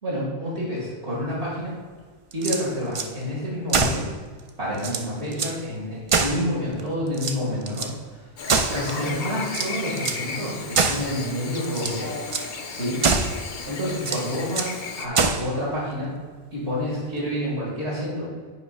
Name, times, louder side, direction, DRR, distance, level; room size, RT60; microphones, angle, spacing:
voice 1, 0.0-1.7 2.3-4.1 4.6-8.3 8.7-12.2 12.7-13.0 13.7-16.1 16.5-18.3, equal, 80° right, -6 dB, 2.2 m, -28 dB
sound 1, 2.3-3.1 3.7-4.1 4.5-4.6 4.8-5.6 6.1-6.8 7.1-7.9 8.5-9.0 9.5-10.3 10.7-11.1 11.6-12.0 12.3-12.5 13.0-13.4 14.0-14.8 15.1-15.5, right 4 dB, 50° right, 0.3 m, -25 dB
Chirp tweet / Buzz, 8.4-15.1, left 4 dB, 50° left, 0.8 m, -35 dB
9.5 x 3.2 x 5.3 m, 1.5 s
omnidirectional pair, 1.1 m